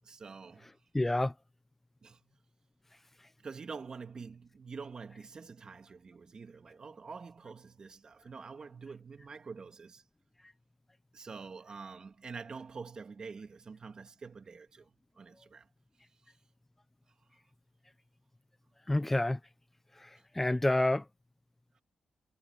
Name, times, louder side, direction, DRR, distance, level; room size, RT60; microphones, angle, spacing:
voice 1, 0.0-0.7 2.0-2.2 3.4-10.0 11.1-14.9 15.2-15.7, right 5 dB, 40° right, 3.0 m, -46 dB
voice 2, 0.9-1.3 18.9-19.4 20.0-21.0, left 1 dB, 10° left, 0.7 m, -28 dB
cardioid pair, 115°, 2 cm